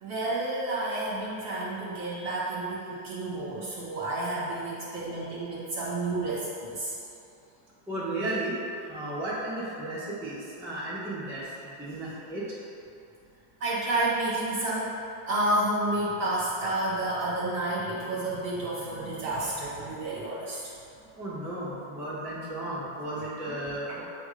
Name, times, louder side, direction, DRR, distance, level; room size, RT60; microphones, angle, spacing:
voice 1, 0.0-6.9 13.6-20.7, right 2 dB, 50° right, -8 dB, 1.4 m, -30 dB
voice 2, 7.9-8.5 8.9-12.4 21.2-24.0, right 1 dB, ahead, -9 dB, 0.8 m, -34 dB
7.8 x 2.6 x 4.9 m, 2.7 s
omnidirectional pair, 1.9 m